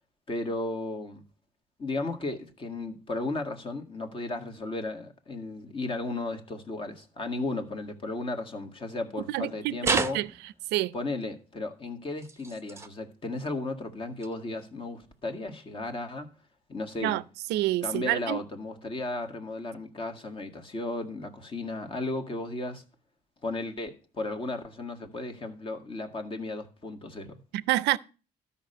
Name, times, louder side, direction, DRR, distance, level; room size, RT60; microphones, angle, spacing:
voice 1, 0.3-1.2 1.8-10.2 10.9-16.3 16.7-17.2 17.8-22.8 23.4-27.4, left 2 dB, 30° left, 1.9 m, -35 dB
voice 2, 9.3-10.3 10.7-10.9 17.0-17.2 17.5-18.4 27.5-28.0, right 16 dB, 85° right, 0.6 m, -27 dB
sound 1, 9.8-10.7 12.2-12.9 14.2-14.3 15.2-15.3, right 3 dB, 15° right, 0.8 m, -31 dB
13.0 x 5.7 x 6.7 m
cardioid pair, 110°, 17 cm